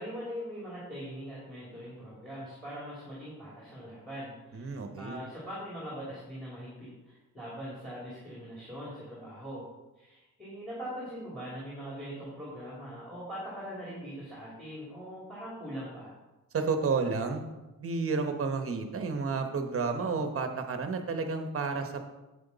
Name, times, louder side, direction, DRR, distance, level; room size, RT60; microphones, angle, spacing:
voice 1, 0.0-9.7 10.0-16.2, equal, ahead, -7 dB, 2.6 m, -41 dB
voice 2, 4.5-5.2 16.5-17.4 17.8-22.0, right 4 dB, 40° right, 6 dB, 1.0 m, -31 dB
9.5 x 8.1 x 4.0 m, 1.0 s
wide cardioid pair, 175°, 34 cm